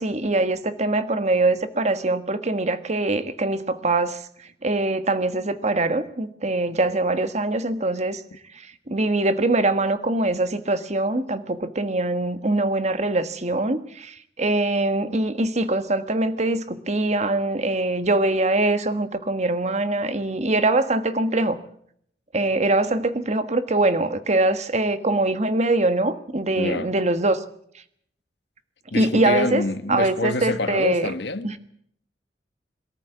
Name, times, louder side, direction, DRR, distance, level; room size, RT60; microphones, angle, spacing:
voice 1, 0.0-8.2 8.5-21.6 22.3-27.4 28.9-29.6 29.9-31.1 31.4-31.6, right 2 dB, 40° right, 1.5 m, -23 dB
voice 2, 26.6-26.9 28.9-31.6, left 2 dB, 70° left, 1.3 m, -26 dB
22.5 x 13.5 x 9.3 m
head